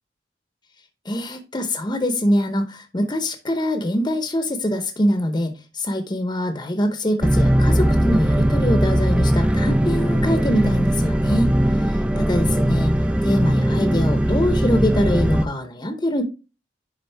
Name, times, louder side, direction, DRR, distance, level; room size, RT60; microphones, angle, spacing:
voice 1, 1.0-11.5 11.8-12.9 13.2-16.2, equal, 25° left, 7 dB, 0.8 m, -23 dB
sound 1, 7.2-15.5, right 1 dB, 5° right, 0.4 m, -19 dB
10.5 x 3.8 x 3.4 m, 0.31 s
head